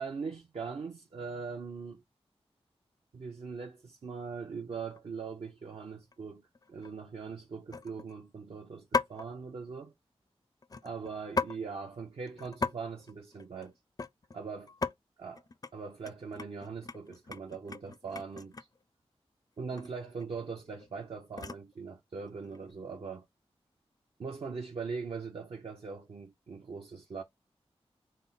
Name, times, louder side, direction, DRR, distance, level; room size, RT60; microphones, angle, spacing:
voice 1, 0.0-2.0 3.1-9.9 10.8-13.7 14.3-14.7 15.2-15.4 15.7-18.5 19.6-23.2 24.2-27.2, right 5 dB, 65° right, 0.7 m, -41 dB
sound 1, 4.7-5.0 5.5-5.8 6.1-6.2 6.5-6.9 7.7-8.2 8.9-9.3 10.6-11.6 11.9-12.0 12.3-12.7 13.0-14.4 14.7-14.9 15.4-15.7 16.0-18.8 19.7-19.9 20.2-21.7 22.4-22.7, left 4 dB, 35° left, 0.4 m, -37 dB
5.4 x 2.1 x 3.9 m
wide cardioid pair, 80°, 11 cm